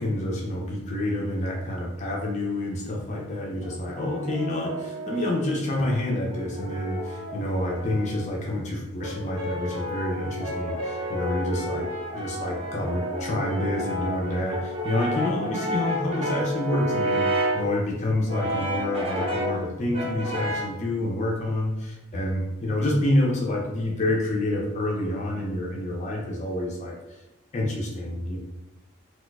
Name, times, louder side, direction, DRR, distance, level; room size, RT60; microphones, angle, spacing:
voice 1, 0.0-27.2 27.5-28.4, left 1 dB, 35° left, -1 dB, 0.4 m, -28 dB
Brass instrument, 3.6-5.6 6.3-8.3 9.0-17.7 18.3-19.6 19.9-20.8, equal, 30° right, 0.6 m, -31 dB
4.1 x 2.3 x 2.3 m, 1.0 s
head